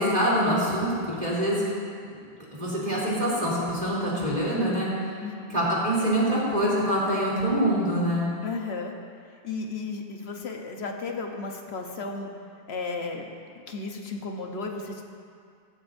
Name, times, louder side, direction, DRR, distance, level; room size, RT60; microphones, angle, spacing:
voice 1, 0.0-1.6 2.5-4.9 5.5-8.3, equal, 45° right, -7 dB, 3.4 m, -25 dB
voice 2, 5.2-5.6 8.4-8.9 9.4-12.3 12.7-13.3 13.5-15.1, left 4 dB, 85° left, 2 dB, 1.4 m, -34 dB
15.5 x 14.0 x 2.7 m, 2.3 s
omnidirectional pair, 1.0 m